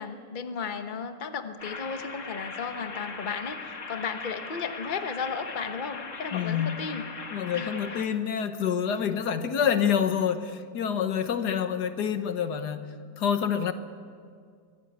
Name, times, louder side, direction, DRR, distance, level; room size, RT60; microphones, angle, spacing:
voice 1, 0.0-7.1 7.5-8.2, left 5 dB, 35° left, 7 dB, 1.1 m, -35 dB
sound 1, 1.6-8.1, left 4 dB, 50° left, 2.0 m, -39 dB
voice 2, 6.3-6.8 7.3-13.7, left 8 dB, 80° left, 9 dB, 1.7 m, -27 dB
24.0 x 17.0 x 8.1 m, 2.2 s
omnidirectional pair, 1.7 m